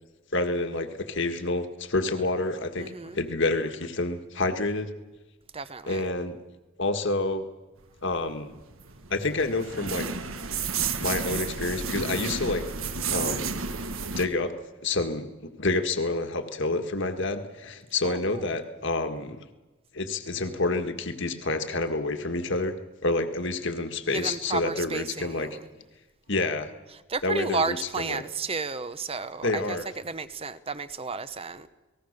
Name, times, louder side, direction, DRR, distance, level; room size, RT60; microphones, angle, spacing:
voice 1, 0.3-4.9 5.9-6.4 6.8-7.5 8.0-8.5 9.1-10.1 11.0-12.7 13.1-13.5 14.2-14.5 14.8-19.4 19.9-22.8 23.0-25.5 26.3-26.7 27.2-28.2 29.4-29.9, left 2 dB, 55° left, 7 dB, 1.8 m, -28 dB
voice 2, 2.8-3.2 5.5-6.1 18.0-18.5 24.1-25.6 27.1-31.7, right 4 dB, 25° right, 13 dB, 0.9 m, -32 dB
sound 1, 8.3-14.2, right 5 dB, 70° right, 1.5 m, -31 dB
29.5 x 19.0 x 6.7 m, 1.2 s
head